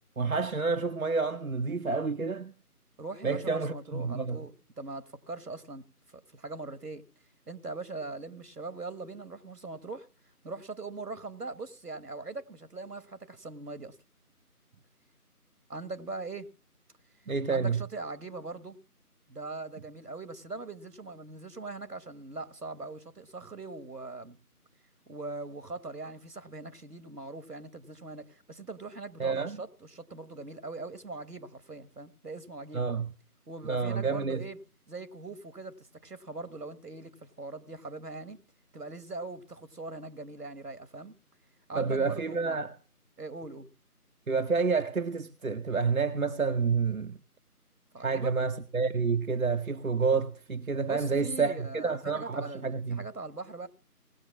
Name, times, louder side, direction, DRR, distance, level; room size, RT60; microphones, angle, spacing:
voice 1, 0.2-2.5 3.2-4.4 17.3-17.8 29.2-29.6 32.7-33.1 33.6-34.4 41.7-42.7 44.3-47.2 48.0-53.0, right 4 dB, 65° right, 0.7 m, -29 dB
voice 2, 3.0-5.8 6.1-7.1 7.5-10.1 10.4-14.0 15.7-16.5 17.5-18.8 19.3-24.4 25.1-32.9 33.5-34.6 34.9-38.4 38.7-41.1 41.7-42.6 43.2-43.7 47.9-48.3 50.9-53.7, right 3 dB, 80° right, 1.6 m, -41 dB
19.0 x 6.7 x 7.2 m
figure-of-eight pair, 170°, 46 cm